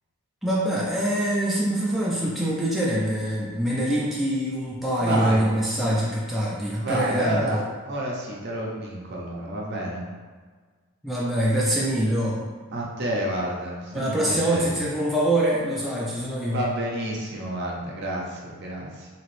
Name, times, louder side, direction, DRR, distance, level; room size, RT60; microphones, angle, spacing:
voice 1, 0.4-7.6 11.0-12.4 13.9-16.6, right 1 dB, ahead, -7 dB, 0.4 m, -24 dB
voice 2, 5.0-5.4 6.7-7.6 7.9-10.0 12.7-14.8 16.5-19.1, right 1 dB, 50° right, -2 dB, 0.6 m, -29 dB
2.9 x 2.9 x 3.0 m, 1.5 s
head